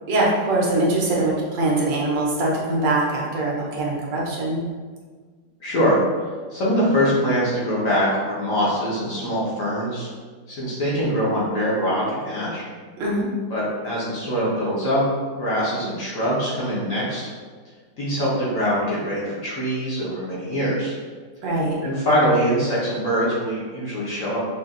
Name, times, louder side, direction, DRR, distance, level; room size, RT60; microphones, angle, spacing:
voice 1, 0.1-4.6 13.0-13.3 21.4-21.8, right 2 dB, 75° right, -4 dB, 1.4 m, -22 dB
voice 2, 5.6-6.0 6.5-10.1 10.5-12.6 13.5-15.0 15.3-17.2 18.0-21.0 21.8-24.4, equal, 55° left, -7 dB, 1.2 m, -23 dB
5.3 x 2.4 x 2.4 m, 1.5 s
omnidirectional pair, 1.9 m